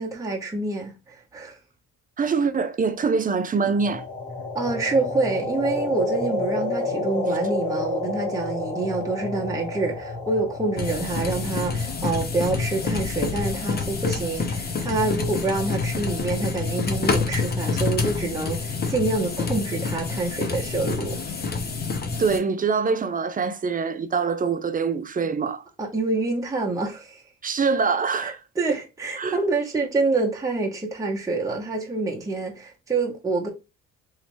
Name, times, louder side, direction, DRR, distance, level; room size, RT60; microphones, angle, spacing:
voice 1, 0.0-1.6 4.5-21.4 25.8-27.2 28.2-33.5, right 3 dB, 10° right, 0.9 m, -27 dB
voice 2, 2.2-4.0 22.2-25.6 27.4-28.4 29.2-29.4, right 5 dB, 25° right, 0.5 m, -24 dB
sound 1, 3.7-11.8, left 2 dB, 10° left, 1.3 m, -29 dB
sound 2, 10.8-22.4, left 4 dB, 30° left, 0.7 m, -27 dB
3.1 x 2.8 x 3.0 m
cardioid pair, 85°, 33 cm